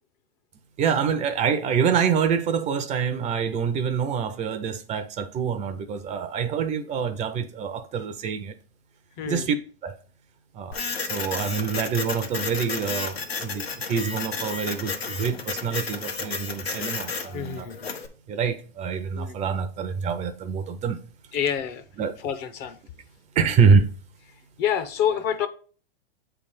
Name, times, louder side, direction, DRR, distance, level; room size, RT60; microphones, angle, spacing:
voice 1, 0.8-8.5 9.3-9.6 9.8-9.9 10.5-17.7 18.3-21.0 22.0-22.2 23.4-23.9, right 6 dB, 25° right, 0.6 m, -26 dB
voice 2, 9.2-9.5 17.3-17.9 19.1-19.3 21.3-21.8 22.2-22.8 24.6-25.5, left 9 dB, 35° left, 0.7 m, -27 dB
Printer, 10.7-18.1, left 5 dB, 90° left, 1.3 m, -32 dB
8.2 x 3.4 x 5.4 m
hypercardioid pair, 115°, 30 cm